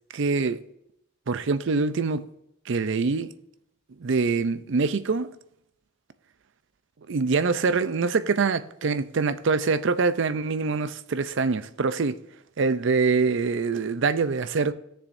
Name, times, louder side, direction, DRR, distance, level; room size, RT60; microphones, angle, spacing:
voice 1, 0.1-0.6 1.3-2.2 2.7-3.3 4.0-5.3 7.1-12.2 12.6-14.7, right 4 dB, 60° right, 0.5 m, -24 dB
17.0 x 6.7 x 2.6 m
head